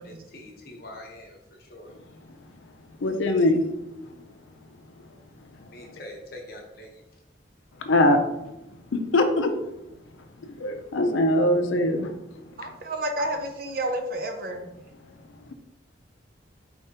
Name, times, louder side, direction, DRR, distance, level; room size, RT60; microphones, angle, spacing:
voice 1, 0.0-2.0 5.7-7.0, left 1 dB, 50° left, 0 dB, 0.9 m, -44 dB
voice 2, 3.0-3.6 5.6-6.0 7.8-8.3 8.9-9.5 10.4-12.1, left 1 dB, 85° left, 6 dB, 0.5 m, -22 dB
voice 3, 12.6-14.7, right 1 dB, 50° right, 4 dB, 0.6 m, -30 dB
4.5 x 3.4 x 2.8 m, 0.92 s
head